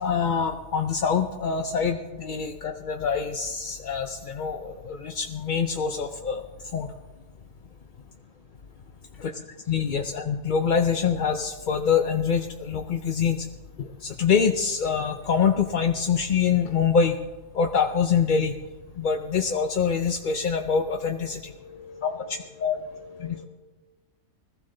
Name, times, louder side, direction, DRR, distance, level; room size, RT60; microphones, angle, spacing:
voice 1, 0.0-6.4 6.7-6.9 9.2-9.3 9.7-13.4 13.8-17.1 17.5-18.5 19.0-21.4 22.0-22.8 23.2-23.4, left 6 dB, 45° left, 4 dB, 0.7 m, -25 dB
voice 2, 21.4-23.5, left 5 dB, 25° left, 2 dB, 1.9 m, -46 dB
21.0 x 15.0 x 3.9 m, 1.2 s
omnidirectional pair, 1.5 m